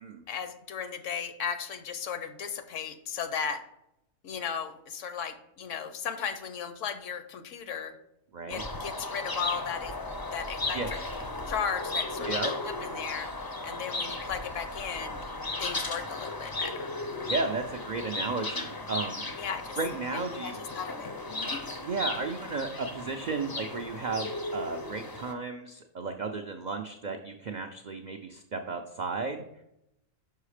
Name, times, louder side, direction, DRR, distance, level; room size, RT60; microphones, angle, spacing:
voice 1, 0.3-3.6 4.2-7.9 8.5-10.0 10.3-11.0 11.5-13.3 13.6-15.2 15.6-16.9 19.4-19.8 20.1-21.7, left 7 dB, 70° left, 10 dB, 1.0 m, -36 dB
sound 1, 8.5-25.3, left 2 dB, 30° left, 0.4 m, -36 dB
voice 2, 12.2-12.5 17.3-19.2 19.8-20.6 21.8-29.4, right 4 dB, 70° right, 5 dB, 0.4 m, -34 dB
5.7 x 5.6 x 4.9 m, 0.83 s
omnidirectional pair, 1.4 m